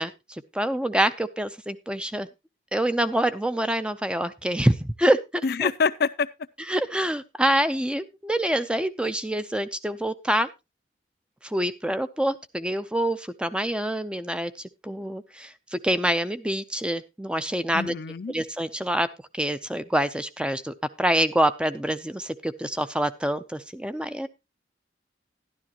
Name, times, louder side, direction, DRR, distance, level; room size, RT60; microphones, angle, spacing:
voice 1, 0.0-2.3 2.7-5.7 6.7-10.5 11.4-17.9 18.3-19.1 19.3-24.3, right 1 dB, 5° right, 0.6 m, -26 dB
voice 2, 5.4-6.3 17.7-18.3, left 5 dB, 60° left, 0.5 m, -25 dB
12.5 x 11.5 x 2.9 m
head